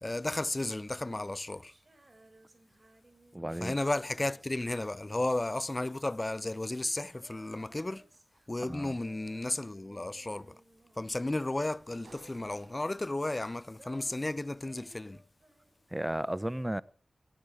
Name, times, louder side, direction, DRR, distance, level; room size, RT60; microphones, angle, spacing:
voice 1, 0.0-1.7 3.6-8.1 8.5-10.6 11.0-15.2, left 2 dB, 30° left, 0.6 m, -33 dB
Female singing, 0.9-11.2 11.5-15.9, right 1 dB, 40° right, 4.8 m, -60 dB
voice 2, 3.3-3.7 8.6-9.0 15.9-16.8, right 1 dB, 15° right, 0.8 m, -34 dB
Sliding door, 10.0-14.0, right 3 dB, 85° right, 5.4 m, -62 dB
18.0 x 12.5 x 5.0 m
cardioid pair, 50°, 0 cm